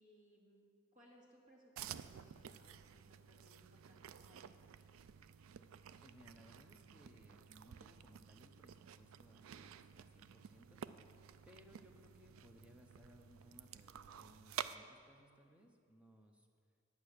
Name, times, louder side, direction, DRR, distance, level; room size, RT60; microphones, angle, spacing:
voice 1, 0.0-4.7, equal, 40° right, -3 dB, 2.3 m, -66 dB
sound 1, 1.8-14.8, right 9 dB, 85° right, 0.4 m, -52 dB
voice 2, 6.0-10.8 11.1-11.2 11.5-16.5, equal, 5° right, 3 dB, 0.8 m, -64 dB
8.9 x 8.9 x 6.6 m, 2.3 s
head